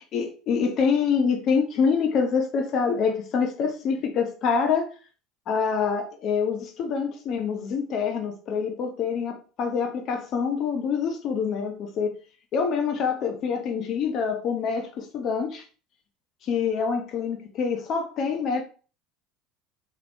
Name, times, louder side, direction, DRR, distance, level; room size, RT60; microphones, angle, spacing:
voice 1, 0.0-4.9 5.5-12.2 12.5-15.6 16.4-18.6, left 6 dB, 55° left, 0.8 m, -26 dB
3.1 x 3.0 x 2.5 m
hypercardioid pair, 80°, 0 cm